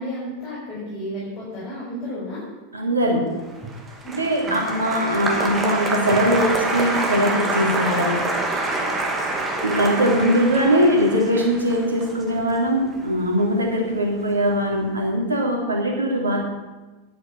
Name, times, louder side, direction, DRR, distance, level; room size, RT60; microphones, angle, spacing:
voice 1, 0.0-2.4 4.0-4.6, equal, 30° left, -7 dB, 5.7 m, -32 dB
voice 2, 2.7-3.4 4.1-8.3 9.6-16.4, equal, 75° right, 0 dB, 3.5 m, -21 dB
Applause, 3.5-13.9 14.1-14.8, right 2 dB, 15° right, 2.4 m, -26 dB
11.5 x 9.5 x 8.6 m, 1.2 s
figure-of-eight pair, 90°, 0 cm